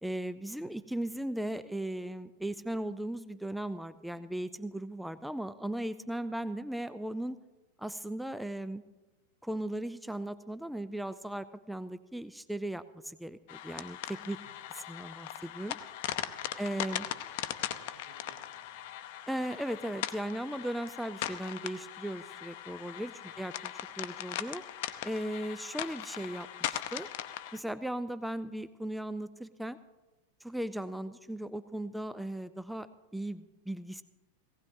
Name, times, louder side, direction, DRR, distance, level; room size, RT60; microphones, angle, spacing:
voice 1, 0.0-7.4 7.8-8.8 9.4-14.4 14.7-15.8 16.6-17.1 19.3-24.6 25.0-27.1 27.5-29.8 30.4-34.0, right 1 dB, ahead, 14 dB, 0.4 m, -37 dB
sound 1, 13.5-27.6, left 12 dB, 55° left, 0.7 m, -40 dB
voice 2, 14.3-14.6 16.4-16.6 17.0-19.0 23.4-23.5, right 2 dB, 80° right, 1 dB, 4.4 m, -61 dB
18.5 x 17.0 x 2.7 m, 1.2 s
figure-of-eight pair, 95°, 0 cm